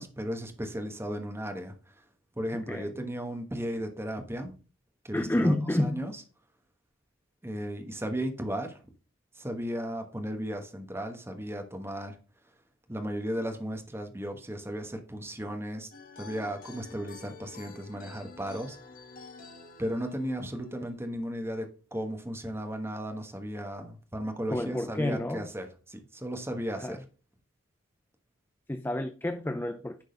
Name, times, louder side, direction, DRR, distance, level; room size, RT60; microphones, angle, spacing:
voice 1, 0.0-2.1 2.3-4.5 5.0-6.2 7.4-8.8 9.3-12.2 12.9-15.9 16.2-18.8 19.8-27.0, equal, 10° right, 1.2 m, -35 dB
voice 2, 2.5-2.9 5.1-6.1 24.5-25.4 26.8-27.0 28.7-30.0, left 1 dB, 10° left, 0.5 m, -29 dB
sound 1, 15.9-21.0, left 4 dB, 45° left, 1.5 m, -49 dB
10.5 x 3.9 x 5.1 m
head